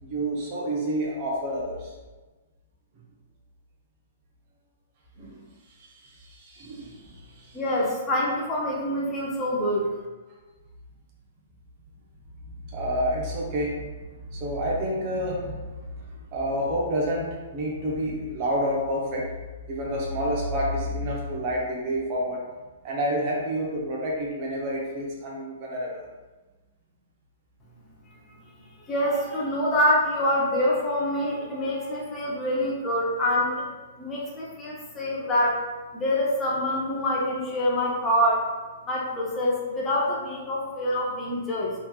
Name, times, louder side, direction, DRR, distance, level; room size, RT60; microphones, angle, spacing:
voice 1, 0.0-1.9 5.2-5.4 5.8-7.0 7.3-7.5 12.6-13.8 14.3-15.7 16.3-17.3 17.5-19.2 19.7-22.4 22.8-26.0, equal, 35° right, -3 dB, 0.8 m, -28 dB
voice 2, 7.5-9.9 28.9-33.7 34.0-35.6 35.9-38.5 38.9-41.7, left 1 dB, 20° left, -5 dB, 0.6 m, -25 dB
3.3 x 2.9 x 2.3 m, 1.2 s
figure-of-eight pair, 110°, 0 cm